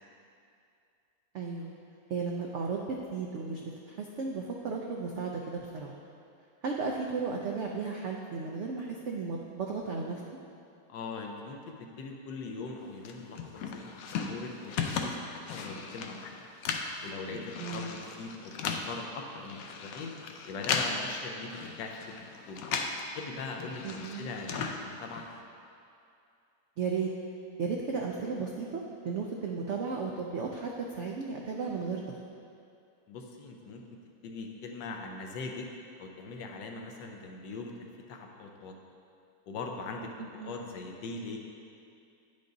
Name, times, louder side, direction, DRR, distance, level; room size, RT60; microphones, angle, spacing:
voice 1, 1.3-1.7 2.1-5.9 6.6-10.2 17.6-17.9 23.8-24.3 26.8-27.1 27.6-32.2 40.2-40.6, right 4 dB, 90° right, 0 dB, 0.6 m, -34 dB
voice 2, 10.9-16.4 17.0-18.6 18.8-20.1 20.4-22.6 23.1-25.3 33.1-33.8 34.2-35.7 36.0-38.7 39.5-41.4, left 3 dB, 90° left, 2 dB, 1.4 m, -41 dB
sound 1, 13.0-23.1 23.3-25.4, left 5 dB, 70° left, 0.9 m, -37 dB
9.3 x 5.2 x 3.9 m, 2.5 s
omnidirectional pair, 1.9 m